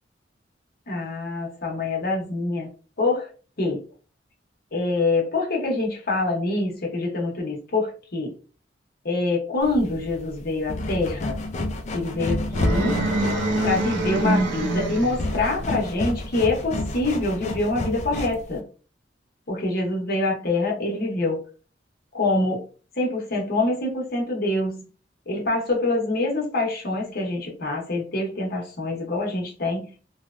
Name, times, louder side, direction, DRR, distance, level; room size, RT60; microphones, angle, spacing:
voice 1, 0.9-2.7 3.0-3.3 3.6-3.8 4.7-8.3 9.0-11.4 11.9-13.0 13.6-18.6 19.5-21.4 22.1-22.6 23.0-24.8 25.3-29.9, left 2 dB, 55° left, 0 dB, 0.8 m, -25 dB
sound 1, 9.6-18.6, left 2 dB, 40° left, 0.3 m, -30 dB
sound 2, 12.5-15.4, right 2 dB, 75° right, 0.6 m, -25 dB
2.8 x 2.1 x 2.4 m, 0.38 s
head